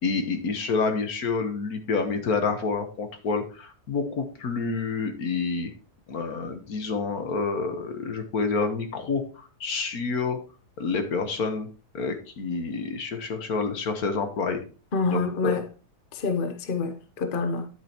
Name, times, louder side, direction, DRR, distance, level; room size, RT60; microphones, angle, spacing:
voice 1, 0.0-5.7 6.1-10.4 10.8-11.7 11.9-14.6 15.1-15.5, left 4 dB, 70° left, 1.7 m, -28 dB
voice 2, 14.9-15.7 16.1-17.7, left 4 dB, 40° left, 1.0 m, -27 dB
9.5 x 8.6 x 2.9 m
omnidirectional pair, 1.6 m